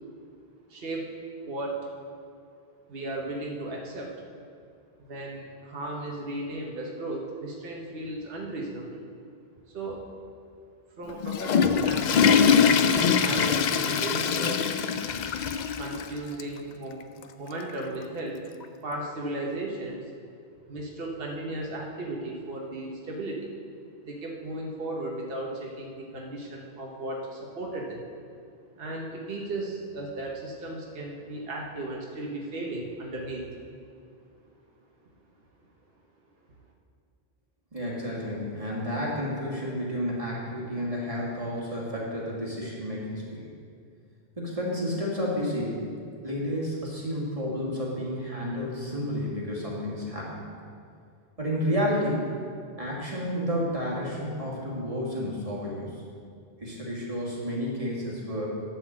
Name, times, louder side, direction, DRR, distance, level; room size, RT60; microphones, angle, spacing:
voice 1, 0.7-1.1 1.4-1.8 2.9-4.1 5.0-9.0 9.7-10.1 11.0-12.4 12.9-14.6 15.7-18.4 18.8-20.0 20.7-23.5 24.0-28.0 28.8-33.4, right 2 dB, 65° right, -1 dB, 1.2 m, -35 dB
Water / Toilet flush, 11.1-16.1 16.4-16.5 17.2-17.3 18.6-18.7, left 6 dB, 55° left, 0.5 m, -23 dB
voice 2, 37.7-43.5 44.4-45.8 46.2-50.4 51.4-52.2 52.8-55.9 56.6-58.6, equal, 35° right, -5 dB, 1.9 m, -31 dB
11.5 x 4.2 x 7.4 m, 2.3 s
omnidirectional pair, 1.1 m